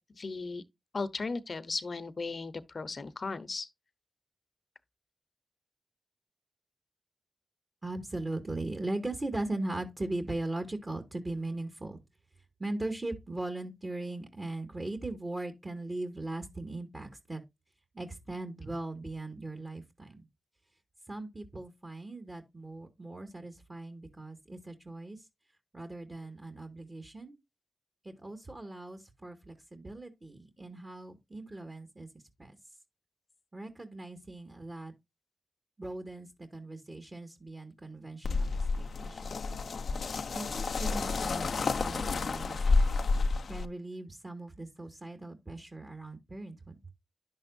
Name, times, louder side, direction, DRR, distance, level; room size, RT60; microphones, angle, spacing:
voice 1, 0.1-0.6 0.9-3.7, left 3 dB, 60° left, 1.0 m, -36 dB
voice 2, 7.8-12.0 12.6-17.4 17.9-20.3 21.1-25.2 25.7-27.4 28.0-32.1 32.4-32.6 33.5-34.9 35.8-39.5 40.3-42.8 43.5-46.8, right 2 dB, 35° right, 2.1 m, -39 dB
sound 1, 38.2-43.7, left 3 dB, 75° left, 0.7 m, -30 dB
10.5 x 7.0 x 2.7 m
cardioid pair, 45°, 0 cm